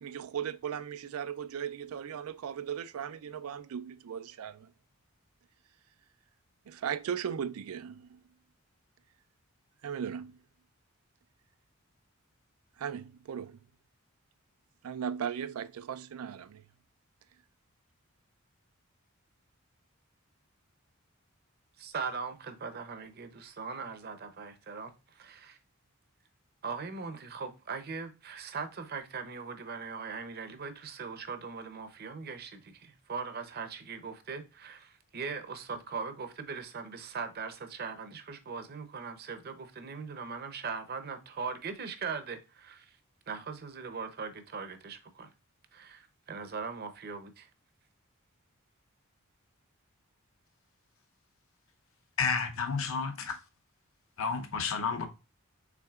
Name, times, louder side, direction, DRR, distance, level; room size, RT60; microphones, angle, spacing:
voice 1, 0.0-4.7 6.7-8.2 9.8-10.4 12.8-13.6 14.8-16.6, right 8 dB, 90° right, 0.4 m, -37 dB
voice 2, 21.8-25.6 26.6-43.0 43.3-45.3 45.7-47.5, right 5 dB, 45° right, 0.7 m, -40 dB
voice 3, 52.2-53.4 54.2-55.1, left 5 dB, 70° left, 0.8 m, -31 dB
5.8 x 3.6 x 2.4 m
head